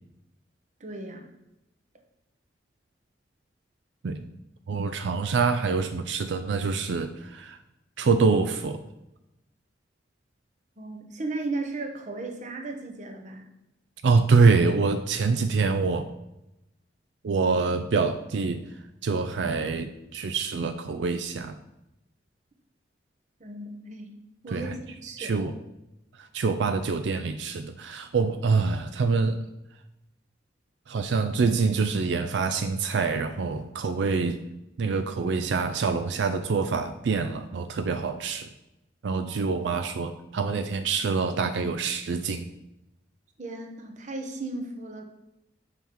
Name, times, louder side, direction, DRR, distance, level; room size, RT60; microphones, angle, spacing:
voice 1, 0.8-1.3 10.8-13.5 23.4-24.2 24.4-25.5 43.4-45.0, right 2 dB, 45° right, 3 dB, 1.0 m, -35 dB
voice 2, 4.7-7.6 8.0-8.8 14.0-16.1 17.2-18.6 19.0-21.6 24.5-24.7 25.2-25.5 26.3-29.4 30.9-34.4 34.8-38.5 39.0-42.5, right 4 dB, 90° right, 8 dB, 0.4 m, -25 dB
5.8 x 5.6 x 4.6 m, 0.91 s
head